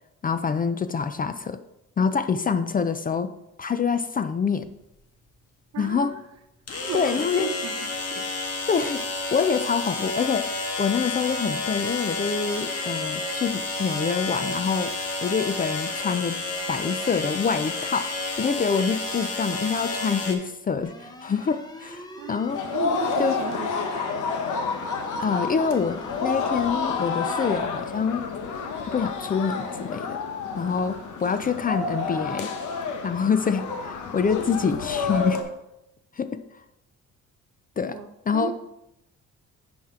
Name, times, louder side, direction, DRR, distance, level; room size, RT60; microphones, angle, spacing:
voice 1, 0.2-1.6 2.0-3.3 3.6-4.7 5.8-6.1 6.9-7.5 8.7-10.5 10.8-14.9 15.2-16.4 16.7-22.6 23.2-23.4 25.2-28.3 28.8-30.2 30.5-32.5 33.0-35.5 36.2-36.4 37.8-38.0 38.3-38.5, left 6 dB, 30° left, 11 dB, 0.4 m, -26 dB
sound 1, 4.6-4.7 6.7-20.3, left 3 dB, 55° left, 1.5 m, -30 dB
voice 2, 5.7-6.2 6.8-8.3 8.8-8.9 22.2-24.2 37.8-38.5, right 9 dB, 60° right, 7 dB, 0.9 m, -36 dB
sound 2, 20.8-27.6, equal, 15° left, 1.0 m, -43 dB
sound 3, 22.5-35.4, left 5 dB, 80° left, 1.0 m, -30 dB
10.0 x 4.4 x 3.7 m, 0.87 s
cardioid pair, 90°, 30 cm